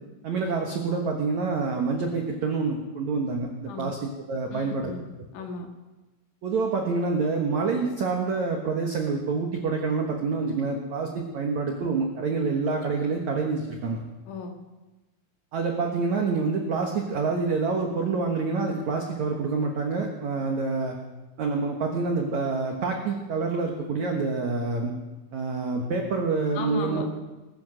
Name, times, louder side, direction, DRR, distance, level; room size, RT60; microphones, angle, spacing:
voice 1, 0.2-4.9 6.4-14.0 15.5-21.0 21.4-24.9 25.3-27.1, right 4 dB, 80° right, 2 dB, 1.6 m, -27 dB
voice 2, 3.7-4.0 4.5-5.1 5.3-5.7 14.3-14.6 26.6-27.2, left 4 dB, 75° left, 4 dB, 3.9 m, -35 dB
21.0 x 10.5 x 6.5 m, 1.2 s
omnidirectional pair, 5.6 m